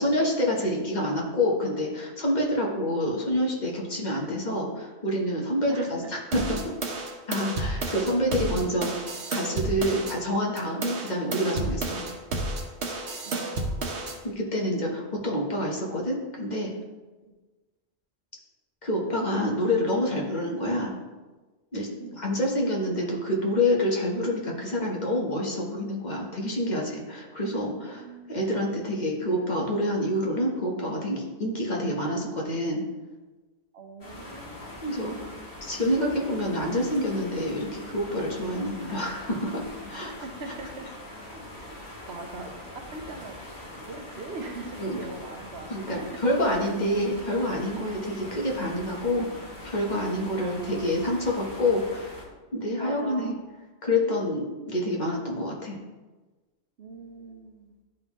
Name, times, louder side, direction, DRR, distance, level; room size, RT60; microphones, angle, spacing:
voice 1, 0.0-6.7 7.3-12.0 14.2-16.7 18.8-20.9 21.7-21.9 22.2-32.8 34.8-35.3 35.6-39.6 39.9-40.1 44.8-45.0 45.7-49.3 49.6-52.1 52.5-53.3 53.8-55.8, left 1 dB, 45° left, -2 dB, 1.2 m, -27 dB
voice 2, 5.7-6.1 8.0-8.1 13.2-14.3 15.8-15.9 17.2-17.3 22.0-22.2 27.3-27.4 27.9-28.4 33.7-34.9 38.5-38.8 40.0-40.9 41.2-41.8 42.1-46.2 50.3-51.2 52.8-53.3 56.8-57.7, right 3 dB, 70° right, 4 dB, 1.0 m, -42 dB
sound 1, 6.3-10.2 10.6-14.2, right 2 dB, 90° right, 1.2 m, -31 dB
sound 2, 34.0-52.2, left 1 dB, 60° left, 1.9 m, -43 dB
11.0 x 3.8 x 3.0 m, 1.2 s
omnidirectional pair, 1.1 m